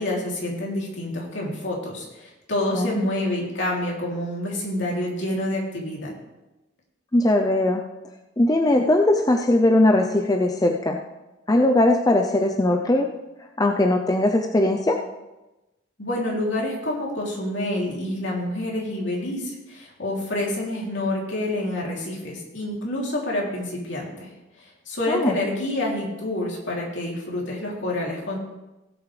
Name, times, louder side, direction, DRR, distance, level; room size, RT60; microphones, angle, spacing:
voice 1, 0.0-6.1 16.0-24.3 24.9-28.4, left 1 dB, 65° left, -3 dB, 3.1 m, -28 dB
voice 2, 7.1-7.8 8.4-11.0 11.5-13.1 13.6-15.0 25.1-25.4, left 1 dB, 20° left, 3 dB, 0.6 m, -19 dB
17.0 x 8.3 x 3.3 m, 1.0 s
head